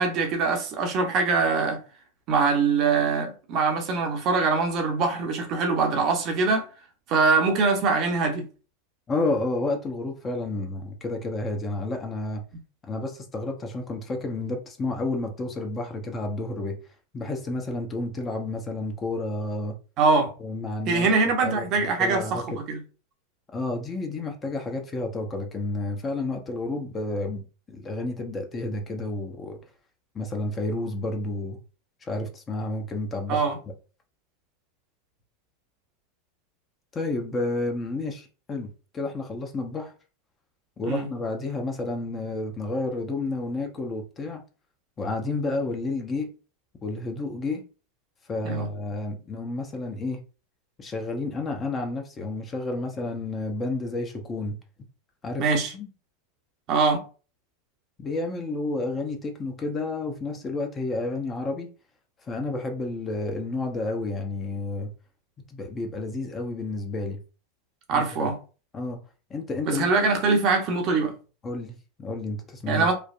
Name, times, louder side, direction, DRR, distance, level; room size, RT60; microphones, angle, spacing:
voice 1, 0.0-1.8 2.3-6.7 7.1-8.4 20.0-20.3 20.9-22.8 33.3-33.6 40.8-41.1 48.4-48.7 55.4-55.7 56.7-57.0 67.9-68.3 69.6-71.1 72.7-72.9, right 4 dB, 50° right, 0.8 m, -23 dB
voice 2, 9.1-12.4 12.9-16.8 17.1-19.7 20.4-21.1 21.4-22.4 23.5-29.6 30.1-31.6 32.1-33.4 36.9-39.9 40.8-44.4 45.0-46.3 46.8-47.6 48.3-50.2 50.8-54.6 55.2-55.9 58.0-61.7 62.3-64.9 65.5-67.2 67.9-68.3 68.7-69.0 69.3-69.9 71.4-72.9, left 2 dB, 25° left, 0.7 m, -30 dB
3.2 x 2.1 x 2.5 m
hypercardioid pair, 90°, 0 cm